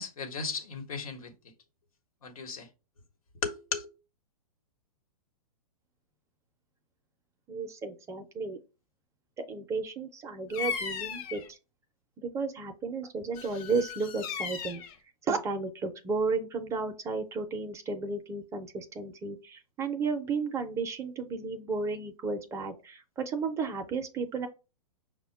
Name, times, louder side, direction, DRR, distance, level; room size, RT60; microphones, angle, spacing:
voice 1, 0.0-1.3 2.2-2.7 3.4-3.8, left 5 dB, 80° left, 1.1 m, -35 dB
voice 2, 7.5-8.6 9.4-11.6 12.2-14.8 15.2-24.5, right 4 dB, 15° right, 0.5 m, -33 dB
Bird vocalization bird call bird song, 10.5-11.5 13.3-15.0, left 7 dB, 35° left, 0.6 m, -36 dB
5.6 x 2.1 x 4.4 m
hypercardioid pair, 135°, 18 cm